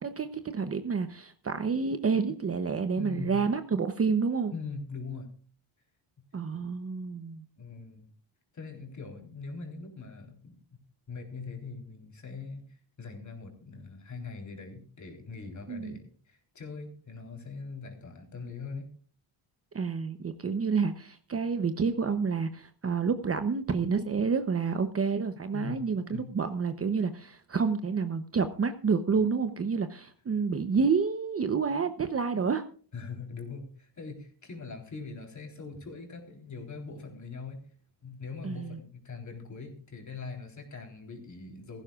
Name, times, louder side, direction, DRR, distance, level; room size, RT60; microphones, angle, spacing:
voice 1, 0.0-4.5 6.3-7.4 15.7-16.0 19.7-32.6 38.4-38.8, right 5 dB, 30° right, 9 dB, 0.8 m, -29 dB
voice 2, 2.9-3.4 4.5-5.3 6.5-6.7 7.6-8.1 8.5-10.5 11.1-18.9 25.5-26.3 32.9-37.6 38.0-41.8, left 4 dB, 35° left, 2 dB, 3.8 m, -42 dB
16.5 x 15.5 x 2.4 m, 0.43 s
cardioid pair, 135°, 49 cm